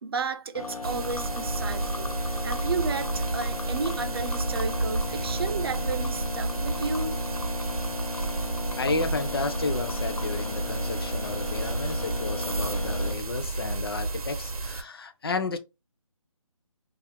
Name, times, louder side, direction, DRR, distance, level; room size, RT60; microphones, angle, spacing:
voice 1, 0.0-7.2, right 5 dB, 45° right, 0.4 m, -33 dB
sound 1, 0.5-13.1, left 4 dB, 90° left, 0.7 m, -36 dB
sound 2, 0.8-14.8, right 2 dB, 90° right, 0.7 m, -31 dB
voice 2, 8.8-15.6, left 3 dB, 45° left, 0.4 m, -32 dB
2.5 x 2.4 x 3.3 m
figure-of-eight pair, 160°, 18 cm